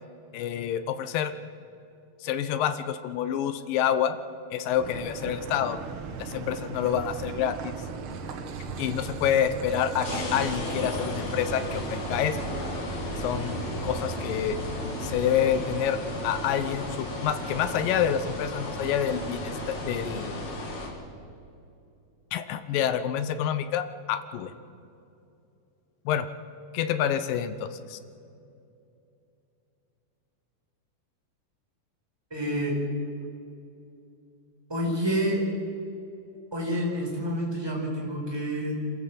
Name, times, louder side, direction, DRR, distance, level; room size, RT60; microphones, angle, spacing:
voice 1, 0.3-1.3 2.2-4.2 4.5-5.8 6.2-7.7 8.8-12.4 13.2-14.6 15.0-16.0 16.2-20.5 22.3-24.5 26.1-26.3 26.7-28.0, left 9 dB, 70° left, 11 dB, 2.4 m, -28 dB
Car passing by / Idling / Accelerating revving vroom, 4.7-15.8, right 4 dB, 75° right, 1.2 m, -38 dB
sound 1, 10.0-20.9, left 1 dB, 50° left, 4.1 m, -34 dB
voice 2, 32.3-32.8 34.7-35.4 36.5-38.9, equal, 5° right, -1 dB, 4.5 m, -28 dB
27.0 x 14.0 x 7.6 m, 2.7 s
omnidirectional pair, 4.4 m